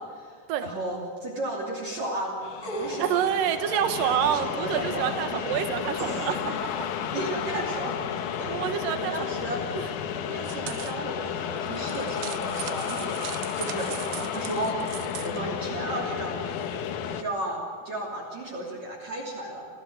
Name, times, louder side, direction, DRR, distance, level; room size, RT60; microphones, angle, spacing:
voice 1, 0.0-2.4 2.8-3.3 3.7-5.5 7.1-8.6 8.9-9.6 10.3-13.3 13.6-13.9 14.3-14.8 15.2-16.5 17.0-19.7, right 1 dB, 45° right, -2 dB, 4.1 m, -34 dB
sound 1, 2.4-17.2, left 8 dB, 65° left, 2.1 m, -32 dB
sound 2, 2.6-3.3 6.0-6.6 7.5-7.6, right 1 dB, 20° left, 5.3 m, -35 dB
voice 2, 3.0-6.9 8.5-9.1 14.2-14.3, right 9 dB, 60° right, 8 dB, 2.8 m, -27 dB
sound 3, 10.4-11.0 11.7-15.4, right 16 dB, 85° right, 3.0 m, -40 dB
28.5 x 16.0 x 8.1 m, 2.1 s
omnidirectional pair, 4.9 m